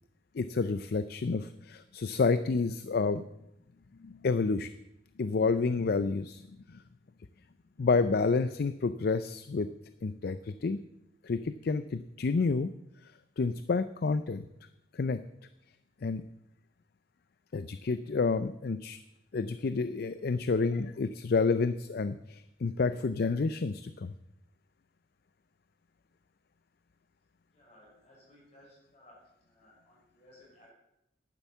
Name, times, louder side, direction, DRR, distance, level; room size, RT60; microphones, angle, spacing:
voice 1, 0.3-3.2 4.0-4.7 5.2-6.4 7.8-9.7 10.0-10.8 11.2-12.7 13.4-14.5 14.9-15.2 16.0-16.2 17.5-19.0 19.3-24.1, left 4 dB, 55° left, 13 dB, 0.4 m, -29 dB
voice 2, 27.5-30.7, left 1 dB, 35° left, -2 dB, 5.9 m, -59 dB
10.5 x 10.0 x 7.2 m, 0.84 s
head